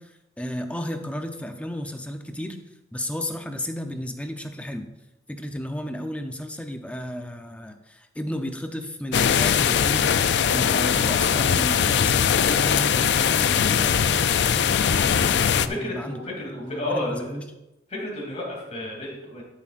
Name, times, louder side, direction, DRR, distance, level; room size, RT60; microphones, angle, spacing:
voice 1, 0.0-2.6 2.9-4.9 5.3-17.4, equal, 5° left, 5 dB, 0.6 m, -33 dB
sound 1, 9.1-15.7, left 8 dB, 70° left, 0.4 m, -21 dB
voice 2, 15.5-17.4 17.9-19.4, left 1 dB, 35° left, -3 dB, 2.9 m, -31 dB
12.5 x 7.4 x 2.5 m, 0.94 s
head